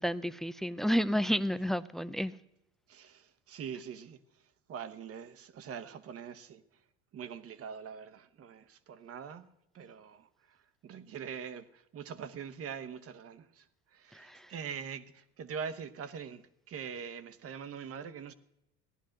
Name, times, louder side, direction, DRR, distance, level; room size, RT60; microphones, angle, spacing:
voice 1, 0.0-2.4 14.1-14.5, equal, ahead, 0.4 m, -31 dB
voice 2, 2.9-4.2 4.7-6.6 7.1-9.5 9.7-18.3, right 7 dB, 45° right, 1.1 m, -43 dB
16.0 x 11.0 x 6.4 m
supercardioid pair, 110°, 33 cm